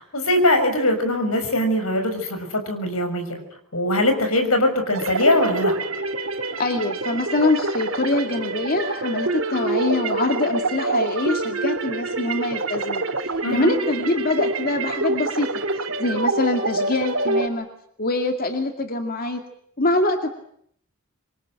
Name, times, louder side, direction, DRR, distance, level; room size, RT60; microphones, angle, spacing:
voice 1, 0.0-3.4 3.7-5.8 13.4-13.7, left 1 dB, 85° left, 7 dB, 6.5 m, -21 dB
sound 1, 4.9-17.5, right 3 dB, 70° right, 3.0 m, -26 dB
voice 2, 6.6-13.0 13.5-15.5 16.0-17.7 18.0-19.4 19.8-20.3, left 2 dB, 45° left, 5 dB, 2.3 m, -24 dB
27.0 x 23.5 x 9.0 m, 0.68 s
head